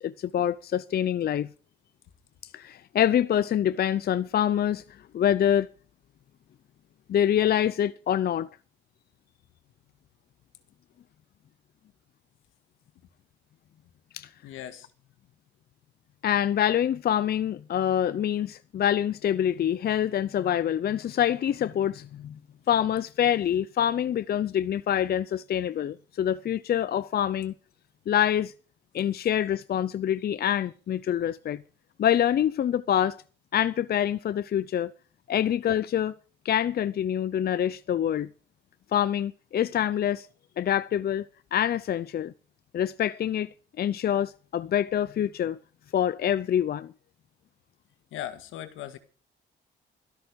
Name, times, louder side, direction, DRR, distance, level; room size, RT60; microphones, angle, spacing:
voice 1, 0.0-1.5 2.5-4.8 5.1-5.7 7.1-8.5 14.1-14.3 16.2-22.4 22.7-27.5 28.1-28.5 28.9-31.6 32.0-33.2 33.5-34.9 35.3-36.1 36.4-38.3 38.9-40.3 40.6-42.3 42.7-43.5 43.8-45.6 45.9-46.9, left 10 dB, 55° left, 0.6 m, -26 dB
voice 2, 14.4-14.9 48.1-49.0, left 11 dB, 85° left, 1.9 m, -38 dB
13.0 x 12.5 x 5.3 m
cardioid pair, 90°, 20 cm